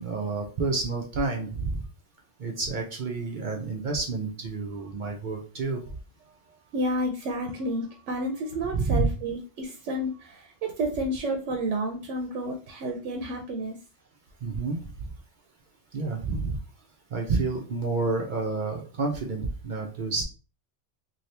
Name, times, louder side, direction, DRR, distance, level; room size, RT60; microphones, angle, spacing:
voice 1, 0.0-1.8 2.4-5.8 8.7-9.1 14.4-14.8 15.9-16.6 17.1-20.2, right 3 dB, 55° right, 1 dB, 0.6 m, -29 dB
voice 2, 6.7-13.8, right 1 dB, 85° right, 2 dB, 1.0 m, -30 dB
2.8 x 2.7 x 3.2 m, 0.37 s
omnidirectional pair, 1.2 m